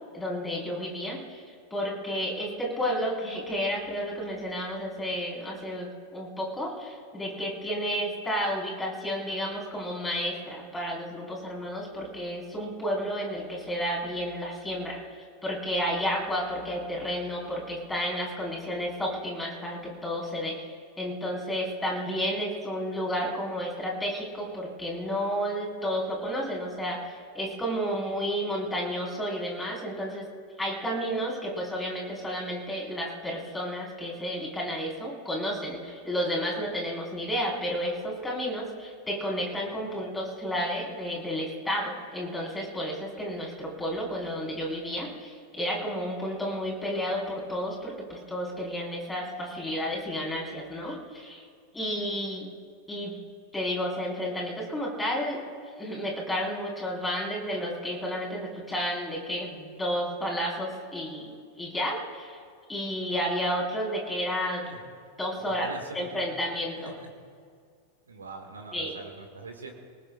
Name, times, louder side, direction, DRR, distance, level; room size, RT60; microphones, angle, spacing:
voice 1, 0.1-1.4 1.7-15.0 15.4-30.3 30.6-51.4 51.7-52.5 52.9-53.2 53.5-55.4 55.8-62.4 62.7-64.6 65.2-65.7 65.9-66.9 68.7-68.9, equal, 10° left, -3 dB, 4.6 m, -31 dB
voice 2, 65.4-66.3 66.8-67.1 68.1-69.7, right 3 dB, 75° right, 2 dB, 2.2 m, -42 dB
27.0 x 19.0 x 2.5 m, 2.1 s
figure-of-eight pair, 90°, 0 cm